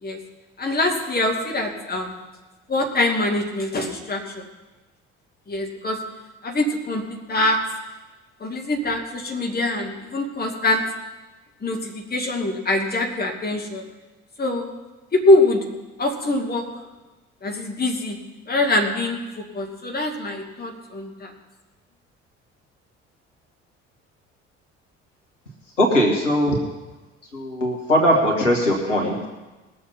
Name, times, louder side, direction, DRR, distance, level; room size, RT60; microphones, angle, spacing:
voice 1, 0.6-2.2 2.7-4.4 5.5-6.0 6.4-7.6 8.4-10.8 11.6-13.8 14.4-14.7 15.1-15.6 16.0-16.6 17.4-18.2 18.5-19.2 19.5-21.3, left 2 dB, 25° left, 1 dB, 2.6 m, -23 dB
voice 2, 25.8-26.6 27.3-29.3, equal, 85° left, -1 dB, 1.7 m, -20 dB
20.5 x 6.9 x 5.7 m, 1.2 s
figure-of-eight pair, 50°, 36 cm